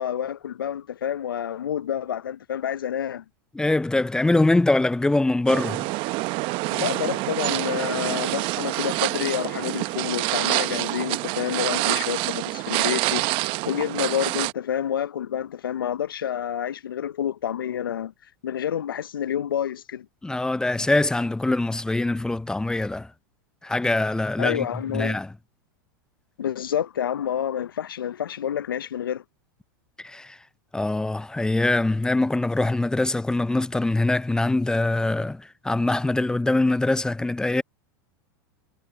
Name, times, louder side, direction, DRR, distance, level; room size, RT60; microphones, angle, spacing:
voice 1, 0.0-3.2 6.7-13.3 13.7-18.1 18.4-20.1 24.4-25.2 26.4-29.2, left 9 dB, 85° left, 0.8 m, -28 dB
voice 2, 3.5-5.9 20.2-23.1 23.6-24.7 24.9-25.3 30.0-30.4 30.7-37.6, left 2 dB, 5° left, 0.5 m, -23 dB
sound 1, 5.5-14.5, right 23 dB, 50° right, 1.0 m, -27 dB
hypercardioid pair, 100°, 11 cm